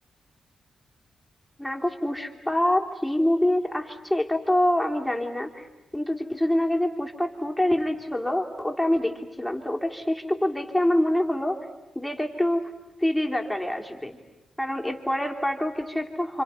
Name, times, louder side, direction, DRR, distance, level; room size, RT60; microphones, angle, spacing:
voice 1, 1.6-5.7 5.9-11.6 11.9-12.7 13.0-14.2 14.6-16.4, left 1 dB, 5° left, 1 dB, 3.1 m, -25 dB
29.5 x 26.5 x 5.7 m, 1.1 s
cardioid pair, 60°, 0 cm